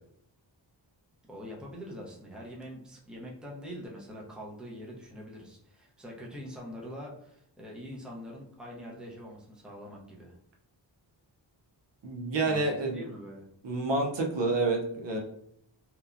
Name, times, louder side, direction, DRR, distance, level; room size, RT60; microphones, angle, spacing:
voice 1, 1.3-10.4 12.4-12.6 12.9-13.5, equal, ahead, -3 dB, 0.5 m, -44 dB
voice 2, 12.0-13.0 13.6-15.2, right 3 dB, 70° right, 1 dB, 0.7 m, -28 dB
3.0 x 2.2 x 2.4 m, 0.71 s
wide cardioid pair, 125°, 44 cm